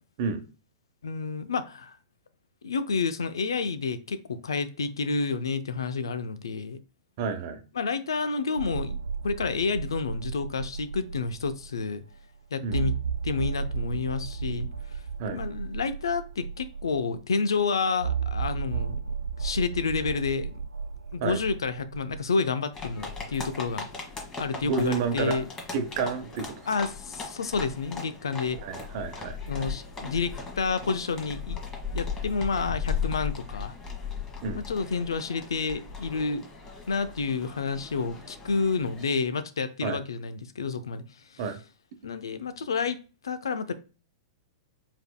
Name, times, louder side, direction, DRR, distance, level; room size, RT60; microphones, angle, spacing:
voice 1, 1.0-1.9 2.6-6.8 7.7-12.0 12.5-12.9 13.2-14.7 15.3-19.0 19.4-20.5 21.1-23.9 24.4-25.4 26.7-28.6 29.5-31.6 31.9-33.7 34.6-36.5 36.9-41.0 41.3-41.4 42.0-43.0 43.2-43.7, left 4 dB, 75° left, 0.5 m, -29 dB
voice 2, 7.2-7.6 12.6-12.8 15.2-15.4 21.2-21.4 24.6-25.4 25.7-26.5 28.6-29.6 34.4-34.6 39.8-40.0 41.4-41.6, right 5 dB, 50° right, 0.9 m, -30 dB
sound 1, 8.6-11.8 12.1-12.2 12.7-17.2 18.0-22.3, right 6 dB, 90° right, 0.5 m, -33 dB
sound 2, 22.7-39.1, left 5 dB, 20° left, 1.4 m, -37 dB
4.7 x 3.6 x 2.3 m
figure-of-eight pair, 105°, 2 cm